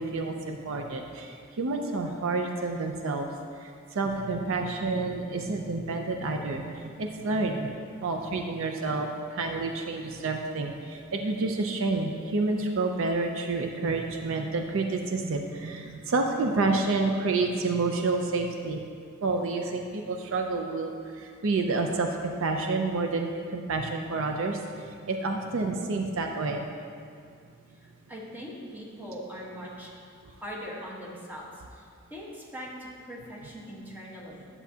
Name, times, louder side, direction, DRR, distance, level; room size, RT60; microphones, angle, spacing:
voice 1, 0.0-3.3 3.9-7.7 8.0-18.8 19.2-22.1 22.4-24.6 25.0-26.6, right 3 dB, 65° right, 3 dB, 0.5 m, -29 dB
voice 2, 27.7-29.9 30.2-34.5, equal, 10° right, -5 dB, 1.2 m, -41 dB
10.5 x 7.0 x 2.8 m, 2.3 s
head